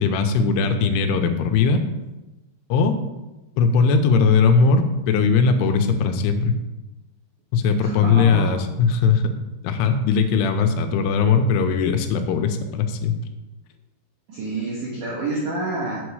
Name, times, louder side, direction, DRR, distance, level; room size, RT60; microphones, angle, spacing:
voice 1, 0.0-1.8 2.7-3.0 3.6-6.6 7.5-9.2 9.6-13.1, left 5 dB, 80° left, 6 dB, 3.2 m, -19 dB
voice 2, 7.8-8.4 14.3-16.0, right 2 dB, 70° right, -3 dB, 1.9 m, -28 dB
8.9 x 7.7 x 4.7 m, 1.1 s
omnidirectional pair, 5.7 m